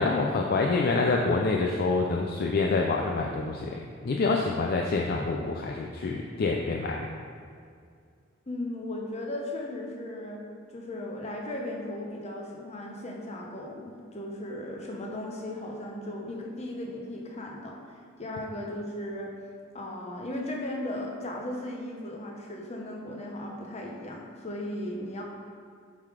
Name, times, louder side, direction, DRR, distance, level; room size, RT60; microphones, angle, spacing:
voice 1, 0.0-7.1, left 3 dB, 50° left, 0 dB, 0.4 m, -27 dB
voice 2, 8.5-10.4 10.7-19.3 19.7-25.2, left 1 dB, 35° left, -1 dB, 0.9 m, -36 dB
7.5 x 3.8 x 4.9 m, 2.2 s
head